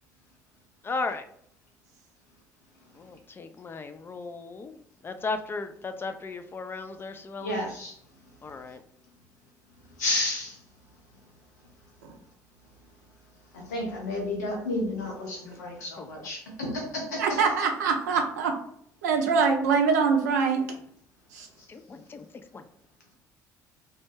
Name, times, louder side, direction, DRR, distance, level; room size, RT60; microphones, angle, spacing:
voice 1, 0.8-1.3 2.9-4.8 5.0-7.6 8.4-8.8 16.0-16.1 21.7-22.3 22.5-22.6, left 3 dB, 25° left, 8 dB, 0.3 m, -35 dB
voice 2, 7.4-8.0 10.0-10.6 13.5-17.6, left 1 dB, 80° left, 0 dB, 0.7 m, -31 dB
voice 3, 17.2-18.5 19.0-20.7 21.3-21.5, right 5 dB, 75° right, 3 dB, 0.4 m, -23 dB
2.2 x 2.0 x 3.1 m, 0.67 s
figure-of-eight pair, 55°, 9 cm